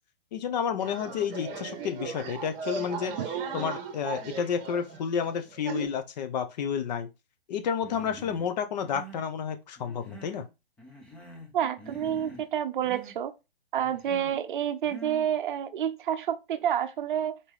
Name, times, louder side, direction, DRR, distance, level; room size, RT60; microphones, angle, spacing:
voice 1, 0.3-3.1 3.5-7.1 7.5-10.5, left 7 dB, 45° left, 0.9 m, -30 dB
sound 1, 0.8-5.9, right 5 dB, 25° right, 1.2 m, -37 dB
Human voice, 7.8-8.5 8.8-9.3 9.8-10.5 10.8-11.5 11.8-12.5 12.8-13.2 13.8-14.3 14.8-15.3, right 2 dB, 5° left, 0.4 m, -46 dB
voice 2, 11.5-13.3 13.7-17.4, right 9 dB, 55° right, 0.6 m, -29 dB
4.3 x 3.6 x 3.1 m
hypercardioid pair, 150°, 30 cm